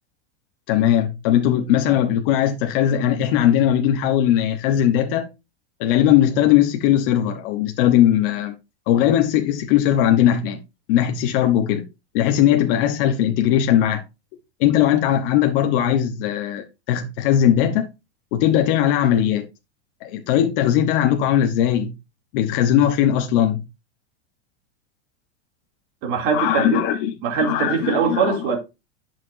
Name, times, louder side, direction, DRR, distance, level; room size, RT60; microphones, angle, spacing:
voice 1, 0.7-5.3 5.8-8.5 8.9-10.6 10.9-11.9 12.1-14.0 14.6-17.9 18.3-19.5 20.0-21.9 22.3-23.6 26.3-27.1 27.4-28.4, left 11 dB, 50° left, 1.0 m, -19 dB
voice 2, 26.0-26.8 27.2-28.6, right 6 dB, 40° right, 2.8 m, -22 dB
10.5 x 5.9 x 2.6 m
supercardioid pair, 160°, 35 cm